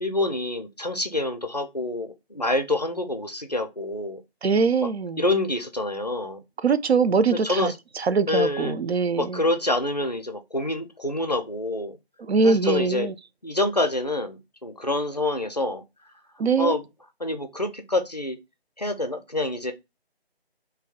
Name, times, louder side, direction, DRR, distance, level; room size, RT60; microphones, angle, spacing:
voice 1, 0.0-4.2 4.8-4.9 5.2-6.4 7.3-7.7 8.3-8.8 9.2-12.0 12.4-13.1 13.4-15.8 16.6-16.9 17.2-18.4 18.8-19.7, left 2 dB, 40° left, 0.4 m, -27 dB
voice 2, 4.4-5.2 6.6-9.4 12.3-13.1 16.4-16.8, right 5 dB, 80° right, 0.5 m, -22 dB
2.7 x 2.1 x 3.8 m
figure-of-eight pair, 160°, 31 cm